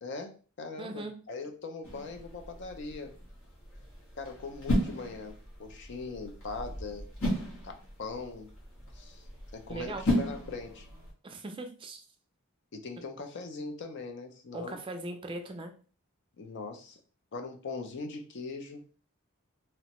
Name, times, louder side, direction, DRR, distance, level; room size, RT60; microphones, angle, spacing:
voice 1, 0.0-3.2 4.2-7.1 7.6-8.5 9.0-9.2 9.5-10.9 12.7-14.8 16.4-17.0 17.3-18.8, left 3 dB, 55° left, 5 dB, 0.4 m, -40 dB
voice 2, 0.8-1.1 9.7-10.0 11.2-12.0 14.5-15.7, right 2 dB, 25° right, 5 dB, 0.3 m, -39 dB
sound 1, 1.8-11.1, equal, 75° left, 1.1 m, -35 dB
2.9 x 2.1 x 2.9 m, 0.38 s
head